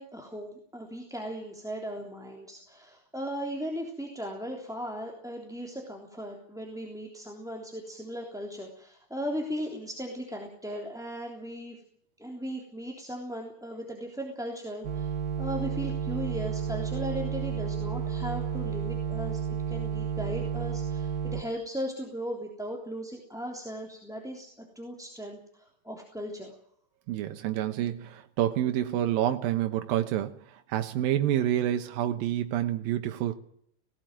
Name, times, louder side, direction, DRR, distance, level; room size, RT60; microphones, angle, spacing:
voice 1, 0.0-11.8 12.2-26.5, equal, ahead, 0 dB, 2.8 m, -37 dB
sound 1, 14.8-21.4, right 7 dB, 50° right, 1.1 m, -31 dB
voice 2, 27.1-33.4, right 12 dB, 90° right, 6 dB, 2.9 m, -28 dB
18.5 x 18.5 x 9.1 m, 0.68 s
omnidirectional pair, 4.0 m